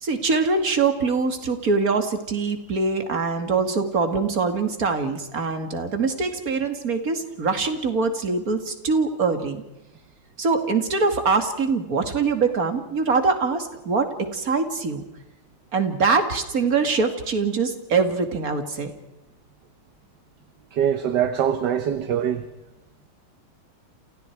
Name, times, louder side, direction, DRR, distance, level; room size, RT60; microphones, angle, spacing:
voice 1, 0.0-9.6 10.4-15.0 15.7-18.9, right 4 dB, 40° right, 2.7 m, -23 dB
voice 2, 20.7-22.4, right 9 dB, 60° right, 1.6 m, -23 dB
30.0 x 28.0 x 4.7 m
omnidirectional pair, 2.3 m